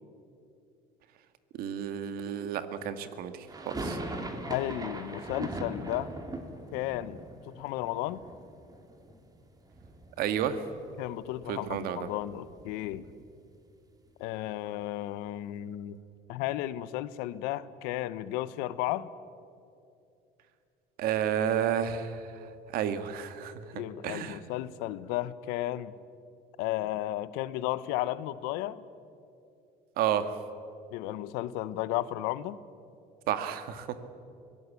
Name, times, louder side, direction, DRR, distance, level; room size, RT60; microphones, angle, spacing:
voice 1, 1.6-4.0 10.2-10.6 11.5-12.1 21.0-22.5 22.7-24.4 30.0-30.4 33.3-34.0, right 9 dB, 75° right, 10 dB, 1.7 m, -31 dB
sound 1, 3.5-9.4 9.7-10.5 10.8-10.9 11.2-13.3, right 2 dB, 25° right, 3.2 m, -40 dB
voice 2, 4.5-6.1 6.7-7.2 7.6-8.2 11.0-13.0 14.2-16.0 16.3-19.1 23.7-25.9 26.6-28.8 30.9-32.6, left 14 dB, 90° left, 16 dB, 0.9 m, -33 dB
23.5 x 17.5 x 8.4 m, 2.5 s
supercardioid pair, 95°, 16 cm